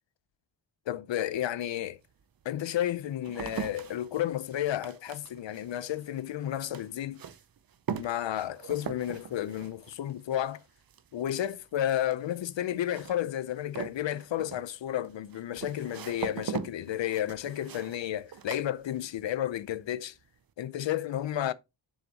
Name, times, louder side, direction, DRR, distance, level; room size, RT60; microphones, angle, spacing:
voice 1, 0.9-2.0 2.4-7.2 8.0-10.6 11.1-20.1 20.6-21.5, left 11 dB, 80° left, 0.7 m, -32 dB
sound 1, 1.4-1.5 2.2-19.4 19.7-20.2, right 7 dB, 55° right, 0.7 m, -42 dB
7.2 x 6.5 x 2.9 m
wide cardioid pair, 150°, 44 cm